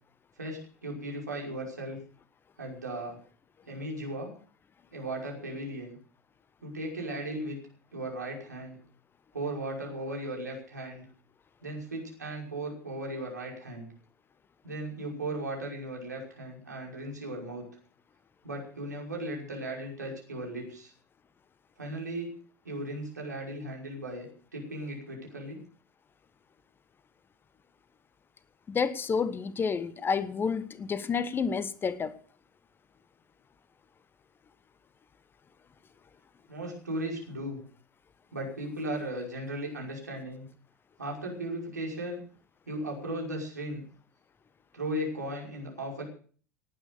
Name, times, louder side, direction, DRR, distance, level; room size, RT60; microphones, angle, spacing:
voice 1, 0.4-2.0 2.6-3.2 3.7-4.3 4.9-6.0 6.6-7.6 7.9-8.8 9.3-11.0 11.6-13.9 14.6-17.7 18.4-20.9 21.8-22.3 22.6-24.3 24.5-25.6 36.5-37.6 38.3-40.4 41.0-42.2 42.7-43.8 44.7-46.0, right 1 dB, 80° right, 5.6 m, -36 dB
voice 2, 28.7-32.2, left 6 dB, 25° left, 1.1 m, -30 dB
18.5 x 9.3 x 6.8 m
figure-of-eight pair, 75°, 9 cm